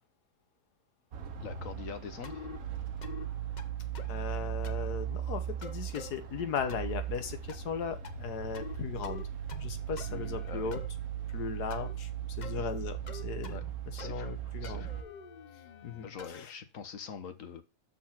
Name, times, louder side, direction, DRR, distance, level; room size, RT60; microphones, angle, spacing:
sound 1, 1.1-15.0, right 10 dB, 65° right, 1.4 m, -38 dB
voice 1, 1.4-2.5 10.1-10.7 13.5-13.6 14.0-14.3 14.6-15.0 16.0-17.6, left 6 dB, 60° left, 9 dB, 1.4 m, -44 dB
sound 2, 2.2-2.6 3.0-3.3 3.6-4.2 4.6-4.9 5.6-6.1 6.7-7.0 7.5-7.8 8.0-8.8 9.0-9.7 10.0-10.9 11.7-11.9 12.4-12.6 13.1-13.7 14.0-14.4 14.6-16.4, left 5 dB, 40° left, 0.7 m, -46 dB
voice 2, 4.1-9.3 9.6-10.8 11.3-12.1 12.4-13.6 13.9-14.9 15.8-16.5, left 6 dB, 85° left, 9 dB, 1.6 m, -37 dB
6.6 x 5.6 x 5.8 m, 0.28 s
omnidirectional pair, 1.7 m